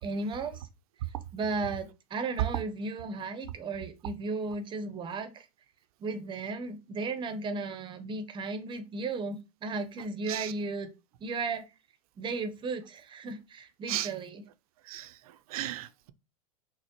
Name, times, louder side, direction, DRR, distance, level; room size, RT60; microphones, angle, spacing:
voice 1, 0.0-0.6 1.3-5.5 6.0-10.9 11.2-11.6 12.2-14.4, right 3 dB, 25° right, 0.6 m, -35 dB
voice 2, 14.9-16.1, right 14 dB, 70° right, 0.4 m, -36 dB
4.1 x 2.0 x 2.8 m
hypercardioid pair, 100°, 20 cm